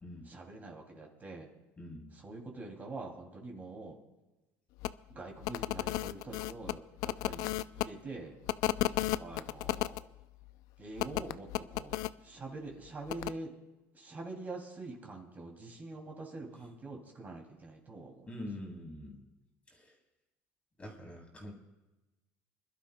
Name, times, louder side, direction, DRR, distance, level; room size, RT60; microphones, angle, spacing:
voice 1, 0.2-1.5 2.1-4.0 5.1-8.4 9.2-10.1 10.8-13.5 13.9-18.3, right 2 dB, 25° right, 0 dB, 2.6 m, -45 dB
voice 2, 1.8-2.1 18.3-19.2 19.7-19.9 20.8-21.5, left 1 dB, 20° left, 1 dB, 3.2 m, -44 dB
sound 1, 4.8-4.9 5.4-7.9 8.5-10.0 11.0-12.1 13.1-13.3, left 16 dB, 70° left, 0.4 m, -33 dB
27.0 x 12.0 x 2.2 m, 1.1 s
supercardioid pair, 115°, 6 cm